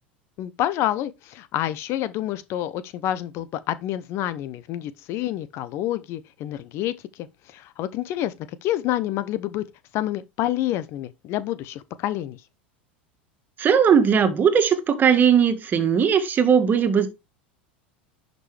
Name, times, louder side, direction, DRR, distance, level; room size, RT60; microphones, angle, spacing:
voice 1, 0.4-8.3 8.6-9.7 9.9-12.4, left 13 dB, 50° left, 0.9 m, -28 dB
voice 2, 13.6-17.1, right 7 dB, 30° right, 1.9 m, -18 dB
11.0 x 5.3 x 3.4 m
hypercardioid pair, 85°, 6 cm